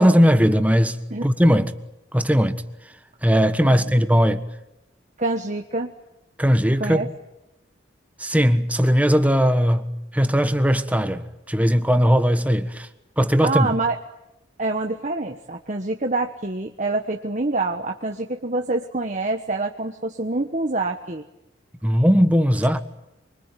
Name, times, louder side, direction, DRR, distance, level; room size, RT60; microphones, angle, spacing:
voice 1, 0.0-1.7 2.1-2.6 3.2-4.4 6.4-7.0 8.2-12.9 13.2-13.7 21.8-22.8, equal, 10° right, 1.3 m, -18 dB
voice 2, 5.2-5.9 6.8-7.1 13.4-14.0 14.6-21.2, right 2 dB, 40° right, 1.3 m, -26 dB
25.5 x 24.5 x 9.2 m
head